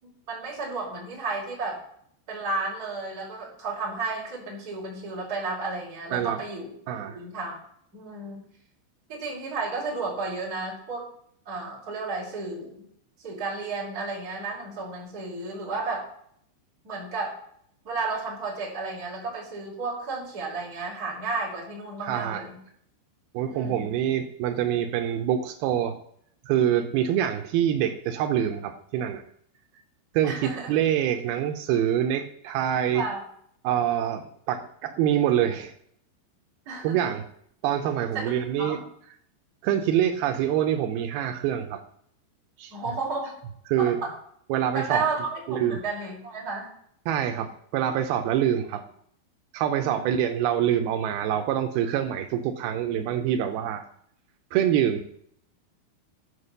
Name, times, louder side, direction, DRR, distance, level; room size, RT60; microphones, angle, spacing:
voice 1, 0.0-1.8 2.3-6.7 7.1-7.5 7.9-8.4 9.1-11.1 11.4-12.9 13.2-16.0 16.8-17.4 17.8-22.6 23.5-24.0 30.2-30.7 32.9-33.2 36.6-37.1 38.1-38.3 38.6-38.8 42.7-43.3 43.8-44.1 44.7-46.7 49.8-50.2, right 3 dB, 20° right, -6 dB, 3.3 m, -32 dB
voice 2, 6.9-7.2 22.0-22.4 23.3-26.0 26.5-29.2 30.1-33.0 33.6-35.7 36.8-37.3 37.6-38.8 39.6-41.8 42.6-42.7 43.7-44.0 44.5-45.1 45.5-45.8 47.1-48.8 49.5-53.8 54.5-55.0, right 10 dB, 90° right, 5 dB, 2.1 m, -25 dB
11.5 x 5.0 x 6.6 m, 0.67 s
omnidirectional pair, 5.3 m